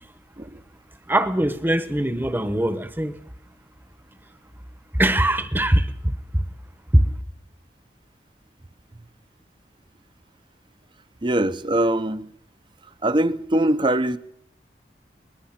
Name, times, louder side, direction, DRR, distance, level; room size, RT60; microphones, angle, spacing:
voice 1, 1.1-3.2 4.9-5.9 6.3-6.4 6.9-7.2, right 1 dB, 10° right, 1.1 m, -21 dB
voice 2, 11.2-12.3 13.0-14.2, right 1 dB, 30° right, 0.8 m, -22 dB
22.5 x 20.5 x 5.9 m
head